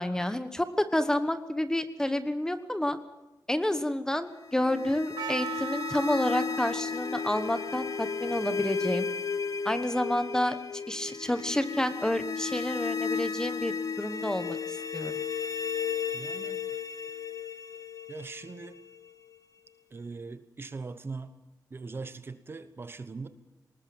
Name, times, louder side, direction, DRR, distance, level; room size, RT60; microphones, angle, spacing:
voice 1, 0.0-3.0 3.5-9.1 9.6-10.6 10.9-15.1, left 1 dB, 10° left, 11 dB, 1.2 m, -29 dB
sound 1, 4.4-19.4, left 6 dB, 55° left, 1.1 m, -34 dB
Percussion, 5.2-10.4, right 8 dB, 85° right, 0.8 m, -42 dB
voice 2, 16.1-16.7 18.1-18.8 19.9-21.3 21.7-23.3, right 4 dB, 35° right, 12 dB, 1.2 m, -40 dB
20.0 x 19.5 x 8.8 m, 1.0 s
wide cardioid pair, 170°, 7 cm